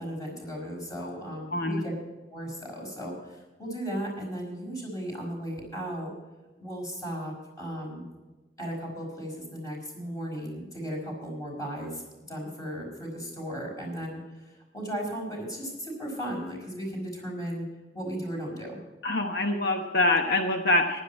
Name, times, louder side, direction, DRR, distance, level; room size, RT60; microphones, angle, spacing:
voice 1, 0.0-1.9 2.3-6.1 6.6-8.0 8.6-17.7 17.9-18.8, equal, 20° left, -1 dB, 5.2 m, -36 dB
voice 2, 1.5-1.8 19.0-21.0, left 2 dB, 65° left, 3 dB, 1.1 m, -25 dB
15.5 x 11.5 x 4.3 m, 1.2 s
head